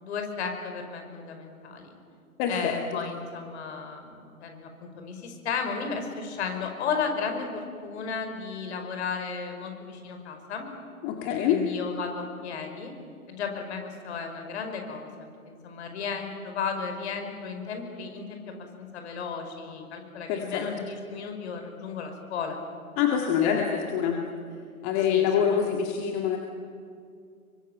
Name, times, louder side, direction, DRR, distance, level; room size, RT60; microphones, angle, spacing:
voice 1, 0.0-1.9 2.5-10.7 11.5-12.9 13.3-15.1 15.5-22.6 23.4-23.9 25.1-25.3 25.5-25.8, left 5 dB, 45° left, 5 dB, 5.3 m, -34 dB
voice 2, 2.4-2.8 11.0-11.6 20.3-20.7 23.0-24.3 24.8-26.4, left 8 dB, 25° left, 2 dB, 2.2 m, -25 dB
27.5 x 24.0 x 9.1 m, 2.3 s
hypercardioid pair, 140°, 44 cm